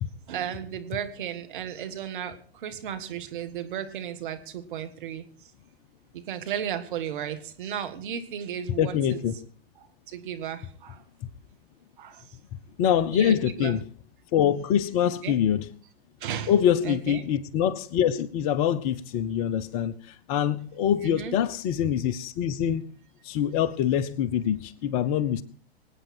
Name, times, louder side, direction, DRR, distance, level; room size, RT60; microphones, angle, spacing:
voice 1, 0.3-5.2 6.1-9.2 10.1-11.0 12.0-12.2 13.1-13.8 15.2-15.3 16.2-16.5 16.8-17.2 21.0-21.3, right 9 dB, 50° right, 1.9 m, -34 dB
voice 2, 8.8-9.4 12.8-13.8 14.3-15.7 16.5-22.8 23.2-25.4, left 9 dB, 35° left, 0.9 m, -25 dB
24.5 x 8.9 x 4.4 m
figure-of-eight pair, 105°, 31 cm